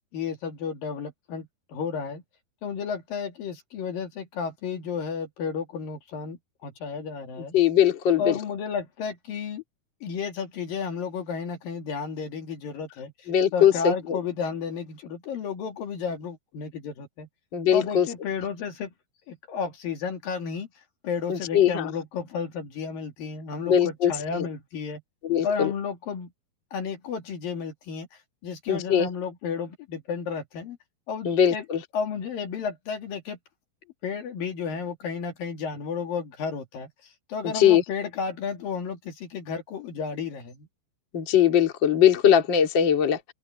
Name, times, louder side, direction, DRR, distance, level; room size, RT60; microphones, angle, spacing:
voice 1, 0.1-2.2 2.6-7.6 8.2-9.6 10.0-13.1 13.5-17.3 17.7-18.9 19.3-20.7 21.0-25.0 25.4-26.3 26.7-28.1 28.4-30.8 31.1-31.7 31.9-33.4 34.0-36.9 37.3-40.7, left 6 dB, 60° left, 3.8 m, -32 dB
voice 2, 7.5-8.4 13.3-14.2 17.5-18.1 21.3-21.9 23.6-24.5 25.2-25.7 28.7-29.1 31.2-31.8 37.5-37.8 41.1-43.3, left 9 dB, 35° left, 2.7 m, -21 dB
open air
omnidirectional pair, 4.7 m